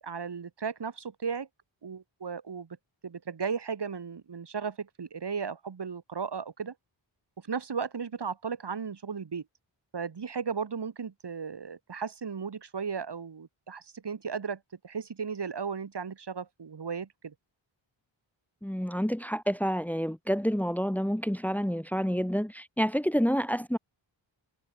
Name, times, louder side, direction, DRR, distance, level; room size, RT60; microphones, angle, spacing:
voice 1, 0.0-1.5 1.8-2.7 3.0-6.7 7.5-9.4 9.9-17.3, right 6 dB, 60° right, 3.1 m, -35 dB
voice 2, 18.6-23.8, equal, 5° left, 1.8 m, -28 dB
wide cardioid pair, 105°, 46 cm